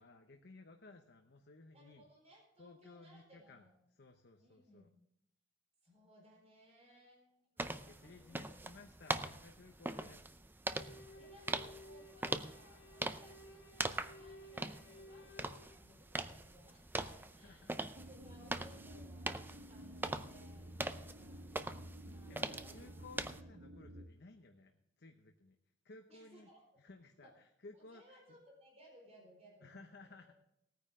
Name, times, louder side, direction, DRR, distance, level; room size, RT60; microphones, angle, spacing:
voice 1, 0.0-2.0 2.6-4.9 7.9-10.2 17.3-17.8 18.7-18.9 22.3-25.6 25.8-26.5 26.8-28.4 29.6-30.3, left 3 dB, 60° left, 4 dB, 0.8 m, -58 dB
voice 2, 1.7-3.7 4.4-5.0 5.8-8.6 11.1-21.7 22.0-23.0 23.3-23.4 26.1-26.6 27.2-27.3 27.9-30.3, equal, 35° right, -1 dB, 4.4 m, -63 dB
sound 1, 7.6-23.4, right 2 dB, 10° right, 0.5 m, -43 dB
sound 2, 10.7-15.8, left 1 dB, 85° left, 2.1 m, -56 dB
sound 3, 17.9-24.1, right 1 dB, 80° right, 1.0 m, -52 dB
18.5 x 9.5 x 3.7 m, 0.78 s
head